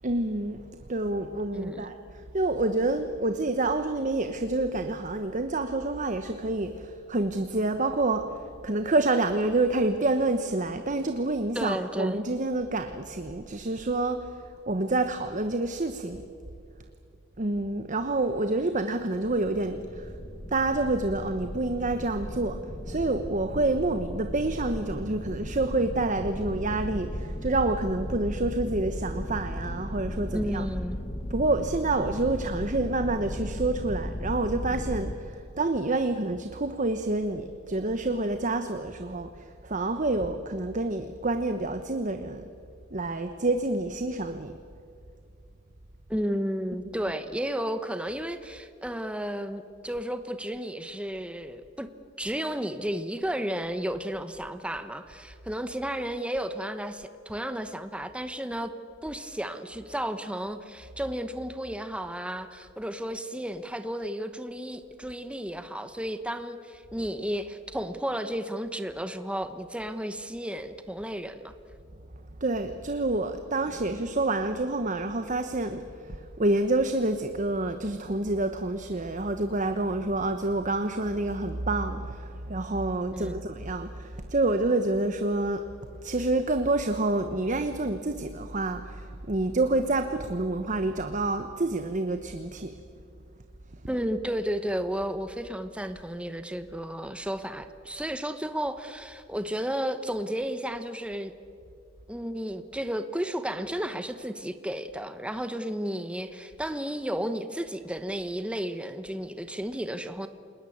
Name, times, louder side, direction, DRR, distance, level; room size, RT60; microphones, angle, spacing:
voice 1, 0.0-0.6 0.9-14.4 14.7-16.2 17.4-20.1 20.5-22.6 22.9-30.7 31.3-42.5 42.9-44.5 72.4-85.6 86.0-92.7, right 2 dB, 40° right, 8 dB, 1.1 m, -28 dB
voice 2, 1.5-1.9 11.5-12.2 30.3-31.0 46.1-51.9 52.2-58.7 59.0-71.5 73.7-73.8 83.1-83.4 93.9-101.3 102.1-110.3, equal, 5° right, 9 dB, 1.0 m, -33 dB
sound 1, 19.2-35.2, left 1 dB, 25° left, 1.3 m, -36 dB
29.0 x 20.0 x 8.7 m, 2.4 s
head